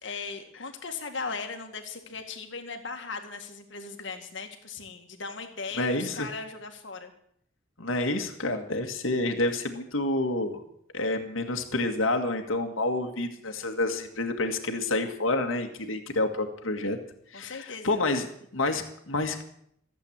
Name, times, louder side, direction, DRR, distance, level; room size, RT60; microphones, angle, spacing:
voice 1, 0.0-7.1 17.3-18.0, left 4 dB, 60° left, 5 dB, 2.1 m, -38 dB
voice 2, 5.8-6.3 7.8-10.6 10.9-17.0 17.3-18.3 18.5-19.4, left 2 dB, 80° left, 4 dB, 1.9 m, -28 dB
15.0 x 8.3 x 8.6 m, 0.69 s
head